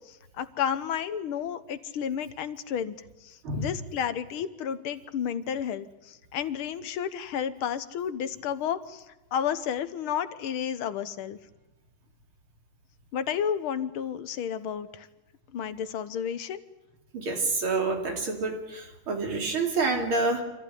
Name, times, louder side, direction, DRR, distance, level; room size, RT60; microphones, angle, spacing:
voice 1, 0.1-3.0 3.2-9.0 9.3-11.4 13.1-15.1 15.5-16.6, left 8 dB, 75° left, 13 dB, 1.8 m, -31 dB
voice 2, 17.1-20.4, right 3 dB, 75° right, 2 dB, 3.7 m, -28 dB
25.5 x 15.0 x 10.0 m, 1.0 s
omnidirectional pair, 2.4 m